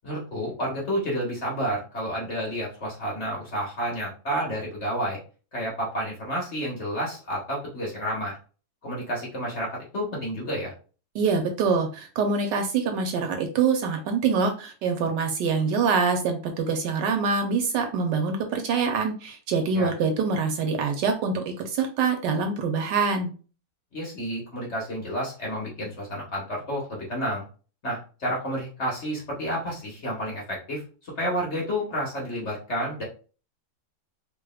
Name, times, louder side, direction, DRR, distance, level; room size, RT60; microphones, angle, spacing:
voice 1, 0.0-5.2 5.5-8.4 8.8-10.7 19.7-19.9 23.9-27.5 27.8-33.0, equal, 40° left, -3 dB, 1.3 m, -30 dB
voice 2, 11.1-23.3, right 5 dB, 75° right, 5 dB, 1.2 m, -25 dB
4.8 x 3.1 x 2.2 m, 0.37 s
omnidirectional pair, 2.1 m